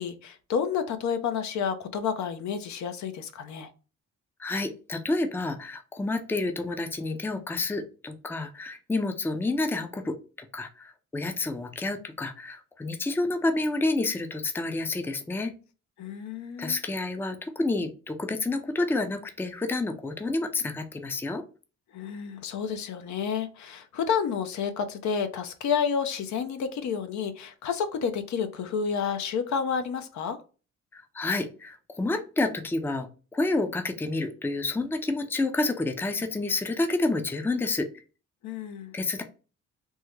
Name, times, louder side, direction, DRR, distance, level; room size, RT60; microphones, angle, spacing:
voice 1, 0.0-3.7 16.0-16.8 21.9-30.4 38.4-38.9, left 6 dB, 70° left, 9 dB, 0.6 m, -30 dB
voice 2, 4.4-15.5 16.6-21.4 30.9-33.1 33.3-38.0 38.9-39.2, left 2 dB, 5° left, 7 dB, 0.4 m, -29 dB
3.5 x 2.1 x 3.0 m, 0.34 s
cardioid pair, 90°, 30 cm